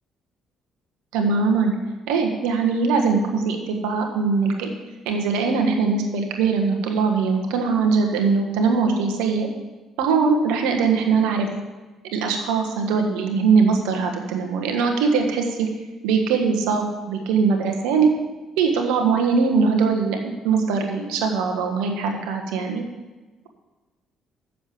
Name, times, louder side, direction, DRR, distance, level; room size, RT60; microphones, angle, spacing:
voice 1, 1.1-1.7 2.1-4.7 5.0-9.5 10.0-11.5 12.1-15.7 16.0-18.1 18.6-22.8, right 5 dB, 85° right, 3 dB, 1.4 m, -21 dB
7.5 x 6.8 x 8.2 m, 1.2 s
supercardioid pair, 60°, 0 cm